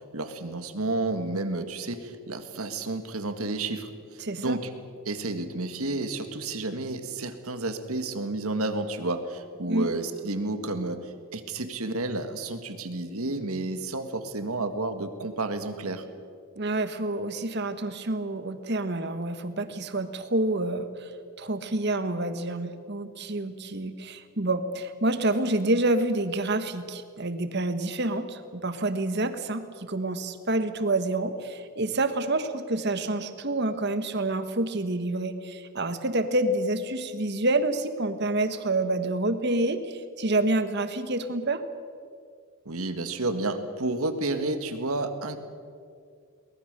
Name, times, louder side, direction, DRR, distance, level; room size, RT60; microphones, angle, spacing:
voice 1, 0.1-4.7 5.1-16.1 42.7-45.4, right 2 dB, 80° right, 9 dB, 1.9 m, -31 dB
voice 2, 4.2-4.6 9.6-9.9 16.5-21.1 21.4-41.6, right 2 dB, 50° right, 10 dB, 1.4 m, -28 dB
23.0 x 19.5 x 6.8 m, 2.2 s
head